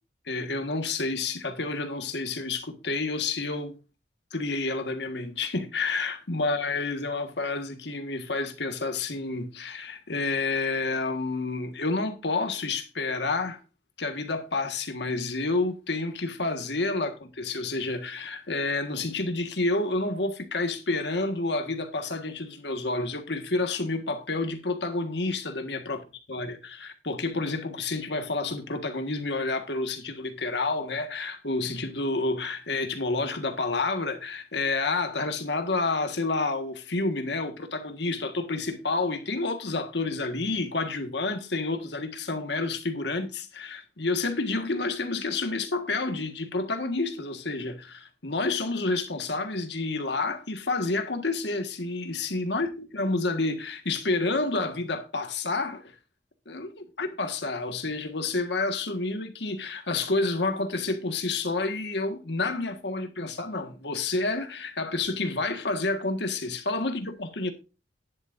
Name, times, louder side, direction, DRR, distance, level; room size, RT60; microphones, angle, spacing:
voice 1, 0.3-3.7 4.3-13.6 14.0-26.0 26.3-55.8 56.5-67.5, left 3 dB, 70° left, 1.7 m, -29 dB
11.0 x 10.5 x 2.6 m
head